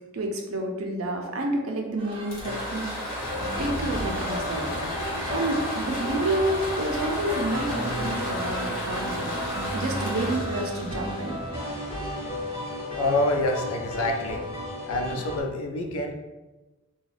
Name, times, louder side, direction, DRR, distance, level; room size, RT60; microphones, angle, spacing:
voice 1, 0.1-3.1 3.4-9.3 9.7-11.4, right 1 dB, 80° right, 2 dB, 0.5 m, -29 dB
sound 1, 2.0-11.9, right 2 dB, 25° right, 0.5 m, -42 dB
sound 2, 2.1-11.9, left 1 dB, 45° left, 1.0 m, -34 dB
sound 3, 3.2-15.4, equal, 15° left, 1.5 m, -33 dB
voice 2, 13.0-14.4 14.9-16.1, left 1 dB, 85° left, 2 dB, 0.4 m, -27 dB
2.4 x 2.3 x 3.2 m, 1.1 s
head